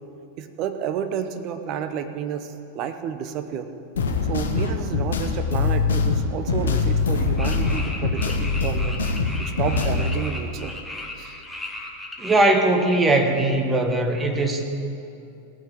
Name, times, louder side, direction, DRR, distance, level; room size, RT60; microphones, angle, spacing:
voice 1, 0.4-3.7 4.3-9.1 9.4-10.7 11.2-11.4, right 8 dB, 40° right, 9 dB, 0.9 m, -30 dB
sound 1, 4.0-10.2, left 4 dB, 65° left, 1.2 m, -23 dB
sound 2, 7.4-12.5, left 1 dB, 5° left, 1.6 m, -36 dB
voice 2, 12.2-14.6, right 2 dB, 15° right, 4 dB, 1.4 m, -20 dB
17.0 x 6.1 x 8.7 m, 2.7 s
figure-of-eight pair, 90°, 0 cm